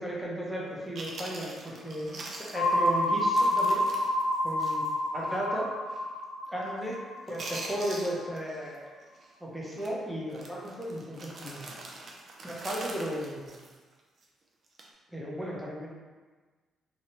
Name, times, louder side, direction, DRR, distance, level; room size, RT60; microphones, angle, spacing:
voice 1, 0.0-3.8 4.4-4.8 5.1-5.7 6.5-7.0 7.3-8.9 9.4-11.7 12.4-13.6 15.1-15.9, equal, ahead, -4 dB, 0.7 m, -35 dB
Chewing mastication, 0.6-0.7 1.0-5.0 5.3-5.4 5.9-6.2 6.5-6.9 7.2-8.8 9.0-9.3 9.7-9.9 10.3-14.2 14.7-14.9, right 2 dB, 50° right, 0.4 m, -43 dB
sound 1, 2.5-8.2, left 1 dB, 90° left, 0.6 m, -28 dB
2.9 x 2.3 x 3.0 m, 1.4 s
cardioid pair, 90°, 0 cm